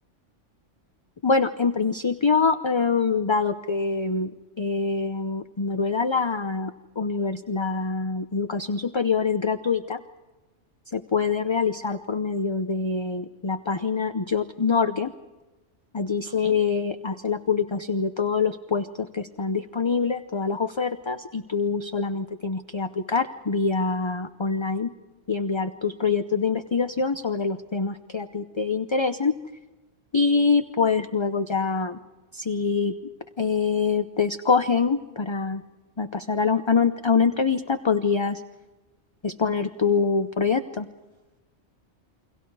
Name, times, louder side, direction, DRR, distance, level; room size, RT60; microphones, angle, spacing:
voice 1, 1.2-4.3 4.6-10.0 10.9-15.1 15.9-24.9 25.3-29.3 30.1-32.0 32.3-32.9 33.4-35.6 36.0-38.4 39.2-40.9, left 5 dB, 30° left, 9 dB, 0.6 m, -25 dB
29.5 x 24.0 x 4.8 m, 1.1 s
omnidirectional pair, 1.2 m